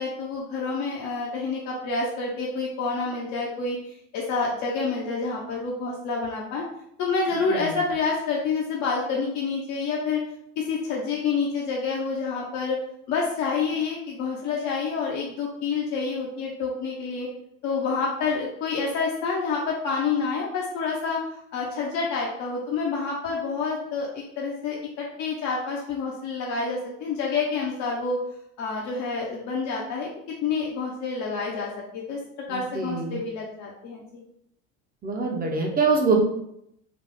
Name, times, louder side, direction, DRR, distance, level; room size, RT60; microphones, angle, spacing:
voice 1, 0.0-6.6 7.0-10.2 10.6-12.8 13.1-17.3 17.6-21.2 21.5-24.1 24.4-28.2 28.6-30.1 30.4-32.2 32.5-34.0, left 4 dB, 45° left, -3 dB, 0.9 m, -28 dB
voice 2, 32.5-33.2 35.0-36.1, right 4 dB, 25° right, 1 dB, 0.9 m, -24 dB
4.0 x 2.3 x 3.6 m, 0.76 s
hypercardioid pair, 85°, 39 cm